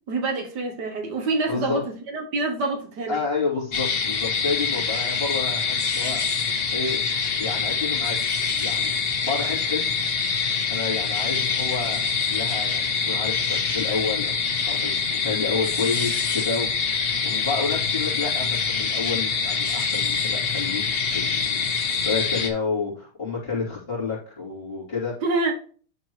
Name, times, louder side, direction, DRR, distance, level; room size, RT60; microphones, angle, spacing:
voice 1, 0.1-3.2 25.2-25.5, right 3 dB, 60° right, 1.4 m, -26 dB
voice 2, 1.5-1.8 3.1-7.0 7.4-8.2 8.5-9.9 10.7-12.0 12.3-14.4 14.7-16.7 16.9-20.8 21.1-25.1, left 4 dB, 25° left, 3.5 m, -30 dB
sound 1, 3.7-22.5, left 5 dB, 50° left, 0.7 m, -25 dB
11.0 x 4.4 x 3.1 m
omnidirectional pair, 2.2 m